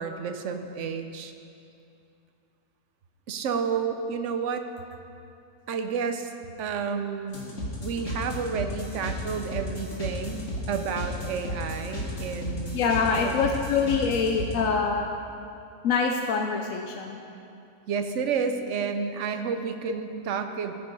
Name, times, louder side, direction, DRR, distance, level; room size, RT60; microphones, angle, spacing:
voice 1, 0.0-1.3 3.3-4.7 5.7-6.3 6.6-7.4 7.8-12.8 13.1-13.4 17.9-20.8, right 6 dB, 60° right, 8 dB, 0.9 m, -30 dB
sound 1, 7.3-14.5, left 1 dB, 45° left, 2.2 m, -34 dB
voice 2, 12.7-15.1 15.8-17.2, left 5 dB, 65° left, 3 dB, 1.0 m, -25 dB
14.5 x 6.9 x 5.3 m, 2.6 s
omnidirectional pair, 1.6 m